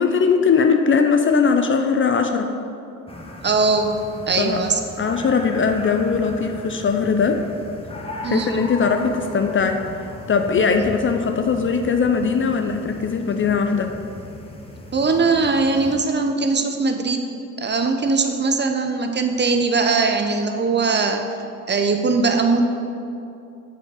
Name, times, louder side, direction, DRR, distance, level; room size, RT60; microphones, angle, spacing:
voice 1, 0.0-2.5 4.4-4.6 5.0-7.4 8.2-9.8 10.3-13.9, left 5 dB, 30° left, 6 dB, 0.5 m, -20 dB
sound 1, 3.1-16.0, left 1 dB, 15° left, 1.0 m, -37 dB
voice 2, 3.4-3.9 4.3-4.8 8.2-8.6 10.7-10.9 14.9-17.2 17.6-21.2 21.7-22.6, right 4 dB, 25° right, 5 dB, 0.6 m, -20 dB
7.1 x 4.2 x 4.8 m, 2.6 s
hypercardioid pair, 50°, 40 cm